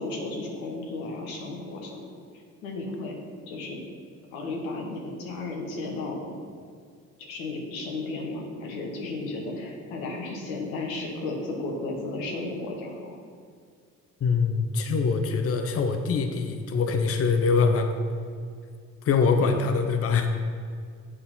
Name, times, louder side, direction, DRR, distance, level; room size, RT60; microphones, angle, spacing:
voice 1, 0.0-2.1 2.6-3.2 3.5-3.8 4.3-6.3 7.2-13.2 19.4-19.6, left 2 dB, 75° left, 0 dB, 1.3 m, -34 dB
voice 2, 14.2-17.9 19.0-20.3, left 5 dB, 35° left, 6 dB, 0.7 m, -23 dB
8.5 x 4.0 x 5.5 m, 2.1 s
hypercardioid pair, 45°, 41 cm